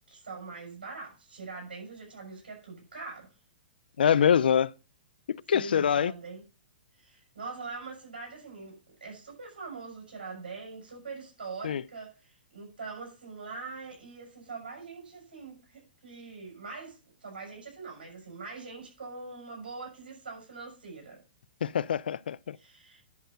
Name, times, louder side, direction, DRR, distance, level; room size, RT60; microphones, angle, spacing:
voice 1, 0.1-3.3 5.5-6.4 7.0-21.2 22.5-23.0, right 4 dB, 85° right, 6.0 m, -43 dB
voice 2, 4.0-4.7 5.3-6.1 11.6-11.8 21.6-22.6, left 8 dB, 80° left, 0.4 m, -24 dB
10.5 x 4.4 x 6.3 m
hypercardioid pair, 130°, 5 cm